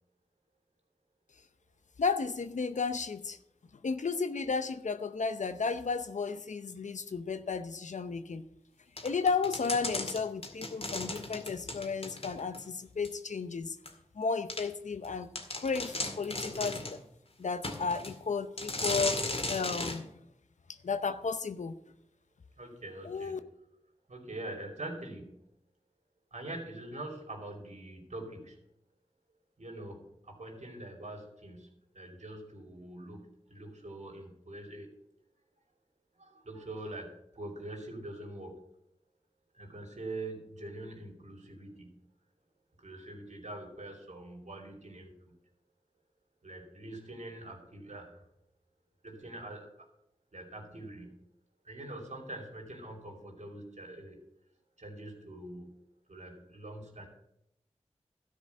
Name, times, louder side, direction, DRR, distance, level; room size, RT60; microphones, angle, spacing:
voice 1, 2.0-3.4 3.8-8.4 9.0-13.8 14.1-15.3 15.5-16.8 17.4-20.1 20.8-21.7 23.0-23.4, left 5 dB, 85° left, 11 dB, 0.7 m, -33 dB
sound 1, 9.0-12.6 13.0-13.1 13.9-14.0 14.5-14.6 15.0-15.1 15.4-17.0 17.6-18.2 18.6-20.0, left 2 dB, 55° left, 2.1 m, -36 dB
voice 2, 22.6-23.4 24.1-25.4 26.3-28.6 29.6-31.7 31.9-34.9 36.2-38.6 39.5-41.9 42.8-45.3 46.4-48.2 49.0-49.7 50.3-51.3 51.6-54.2 54.8-55.8 56.1-57.1, right 1 dB, 75° right, 1 dB, 2.9 m, -44 dB
13.0 x 5.1 x 8.2 m, 0.79 s
cardioid pair, 45°, 12 cm